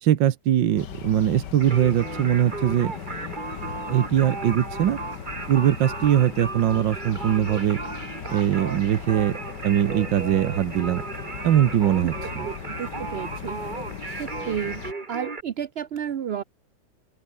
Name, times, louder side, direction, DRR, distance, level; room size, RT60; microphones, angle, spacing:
voice 1, 0.0-2.9 3.9-5.0 5.5-7.8 8.3-9.4 9.6-11.0 11.4-12.5, right 11 dB, 80° right, 1.7 m, -21 dB
sound 1, 0.8-14.9, left 8 dB, 65° left, 2.0 m, -38 dB
Singing, 1.6-15.4, right 3 dB, 25° right, 2.0 m, -35 dB
voice 2, 12.8-13.6 14.2-14.8 15.1-16.4, right 9 dB, 60° right, 0.6 m, -31 dB
open air
omnidirectional pair, 2.0 m